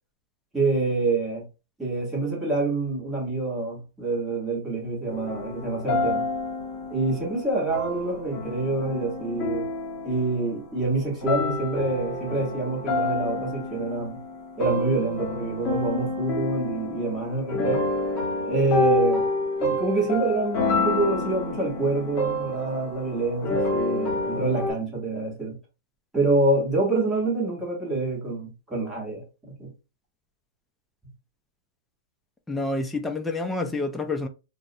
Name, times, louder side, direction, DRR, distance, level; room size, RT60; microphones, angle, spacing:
voice 1, 0.5-1.5 1.8-6.3 6.9-9.7 10.0-14.2 14.6-17.9 18.4-19.3 19.6-25.6 26.1-29.2 29.6-29.7, right 2 dB, 10° right, 1.2 m, -26 dB
sound 1, 5.1-10.8 11.2-24.7, left 2 dB, 35° left, 1.2 m, -28 dB
voice 2, 32.5-34.3, left 2 dB, 5° left, 0.4 m, -28 dB
2.4 x 2.0 x 2.7 m
hypercardioid pair, 140°, 0 cm